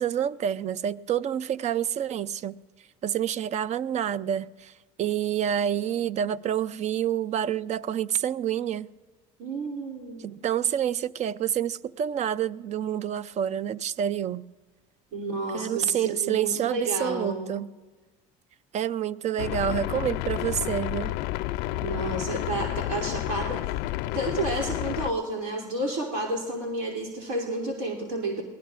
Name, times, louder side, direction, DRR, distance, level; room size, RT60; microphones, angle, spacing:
voice 1, 0.0-2.6 3.0-4.7 5.0-8.9 10.2-14.4 15.5-17.7 18.7-21.2, right 9 dB, 40° right, 0.4 m, -28 dB
voice 2, 9.4-10.4 15.1-17.5 21.8-23.8 24.1-28.4, right 2 dB, 75° right, 2.8 m, -31 dB
sound 1, 19.4-25.1, left 17 dB, 70° left, 0.4 m, -30 dB
24.0 x 18.5 x 2.5 m
supercardioid pair, 100°, 17 cm